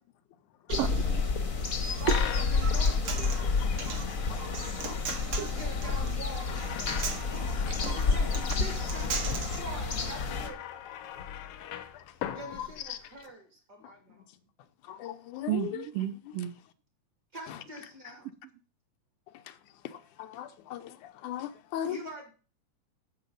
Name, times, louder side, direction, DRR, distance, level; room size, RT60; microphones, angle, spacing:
sound 1, 0.7-10.5, left 4 dB, 40° left, 1.2 m, -30 dB
voice 1, 0.7-1.3 5.4-5.5 7.7-8.0 15.5-16.5, right 11 dB, 80° right, 1.4 m, -33 dB
Human voice, 1.6-9.6, right 5 dB, 50° right, 2.3 m, -39 dB
voice 2, 2.0-3.6 5.3-6.8 7.9-10.6 12.3-14.3 17.3-18.3 21.9-22.3, right 1 dB, 35° right, 2.6 m, -44 dB
sound 2, 2.1-13.3, left 10 dB, 65° left, 1.6 m, -41 dB
voice 3, 12.3-13.0 14.9-15.9 19.8-22.0, left 11 dB, 85° left, 2.3 m, -39 dB
10.5 x 7.7 x 5.3 m
omnidirectional pair, 3.4 m